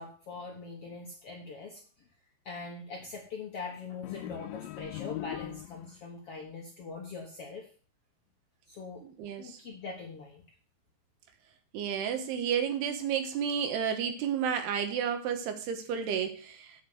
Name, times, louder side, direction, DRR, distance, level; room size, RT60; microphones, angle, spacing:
voice 1, 0.0-1.8 2.4-7.7 8.7-9.0 9.4-10.4, left 4 dB, 65° left, -1 dB, 1.4 m, -42 dB
sound 1, 4.0-6.1, left 16 dB, 85° left, 2.1 m, -40 dB
voice 2, 9.0-9.6 11.7-16.7, right 8 dB, 85° right, 7 dB, 3.3 m, -31 dB
8.7 x 5.3 x 7.7 m, 0.42 s
omnidirectional pair, 4.6 m